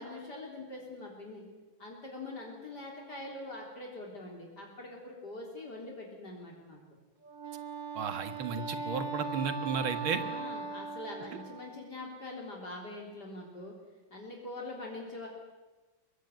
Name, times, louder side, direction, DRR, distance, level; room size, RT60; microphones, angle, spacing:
voice 1, 0.0-1.4 1.8-6.8 10.2-13.8 14.1-15.3, left 2 dB, 50° left, 0 dB, 4.2 m, -43 dB
Wind instrument woodwind instrument, 7.2-11.9, right 4 dB, 65° right, 2.4 m, -39 dB
voice 2, 8.0-10.2, right 6 dB, 80° right, 10 dB, 2.4 m, -33 dB
24.5 x 21.0 x 9.3 m, 1.2 s
omnidirectional pair, 2.2 m